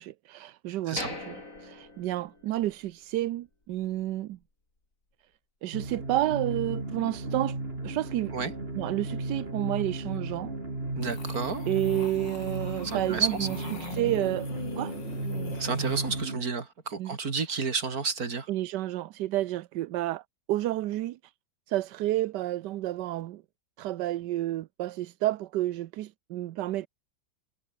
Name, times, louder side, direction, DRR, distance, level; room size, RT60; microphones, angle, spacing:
voice 1, 0.0-4.4 5.6-7.6 7.8-8.5 8.8-10.5 11.7-14.9 16.2-16.3 17.0-17.2 18.5-20.2 20.5-21.2 21.7-23.4 23.8-26.9, right 15 dB, 70° right, 1.2 m, -30 dB
sound 1, 1.0-2.9 3.2-3.3 3.8-4.0, left 2 dB, 40° left, 5.4 m, -41 dB
sound 2, 5.7-16.4, right 2 dB, 30° right, 4.6 m, -35 dB
voice 2, 10.9-11.7 12.8-13.6 15.6-18.5, right 5 dB, 50° right, 3.0 m, -31 dB
sound 3, 11.0-16.3, left 4 dB, 65° left, 3.9 m, -43 dB
omnidirectional pair, 2.1 m